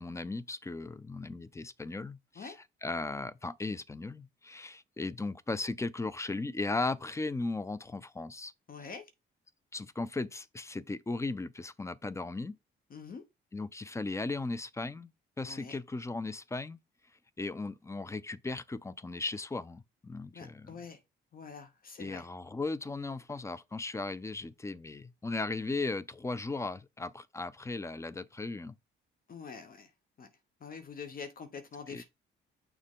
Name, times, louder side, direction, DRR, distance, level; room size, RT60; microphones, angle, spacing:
voice 1, 0.0-2.5 2.8-8.5 9.7-12.6 13.5-15.1 15.4-16.8 17.4-20.8 22.0-28.8 31.9-32.0, left 3 dB, 15° left, 0.4 m, -37 dB
voice 2, 8.7-9.1 12.9-13.2 15.4-15.8 20.3-21.0 21.3-22.3 29.3-29.9 30.2-30.3 30.6-32.0, left 5 dB, 45° left, 1.0 m, -45 dB
6.5 x 4.5 x 3.7 m
cardioid pair, 90°, 20 cm